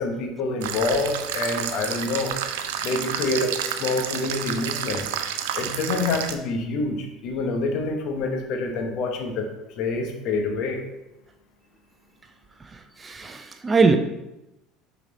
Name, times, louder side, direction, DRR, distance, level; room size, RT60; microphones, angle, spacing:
voice 1, 0.0-2.3 2.8-5.1 5.5-10.8, left 3 dB, 60° left, 4 dB, 0.9 m, -27 dB
sound 1, 0.6-6.3, right 9 dB, 70° right, 0.4 m, -30 dB
voice 2, 13.0-14.0, right 4 dB, 25° right, 7 dB, 0.6 m, -21 dB
5.8 x 4.0 x 4.0 m, 0.95 s
hypercardioid pair, 70°, 0 cm